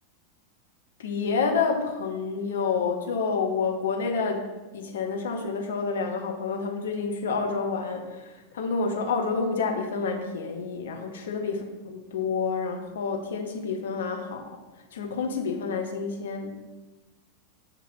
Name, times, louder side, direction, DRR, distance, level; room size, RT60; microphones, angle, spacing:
voice 1, 1.0-4.5 4.7-14.6 14.9-16.6, left 5 dB, 60° left, 3 dB, 0.6 m, -29 dB
6.4 x 2.7 x 2.6 m, 1.2 s
figure-of-eight pair, 90°, 0 cm